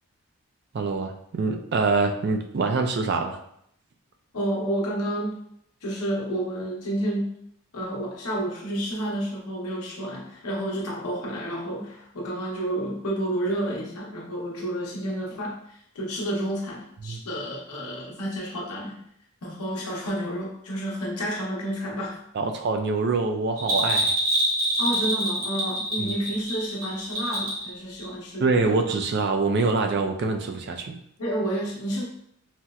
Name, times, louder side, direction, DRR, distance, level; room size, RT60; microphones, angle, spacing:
voice 1, 0.7-3.4 17.0-17.2 22.3-24.1 26.0-26.1 28.4-30.9, right 3 dB, 45° right, 5 dB, 0.3 m, -25 dB
voice 2, 4.3-5.4 5.8-7.3 7.7-15.6 15.9-19.0 19.4-22.2 24.8-28.8 31.2-32.0, right 1 dB, 90° left, -3 dB, 0.9 m, -30 dB
Bell, 23.6-27.7 28.0-28.1, right 1 dB, 65° right, 1.2 m, -25 dB
4.1 x 2.0 x 2.4 m, 0.71 s
head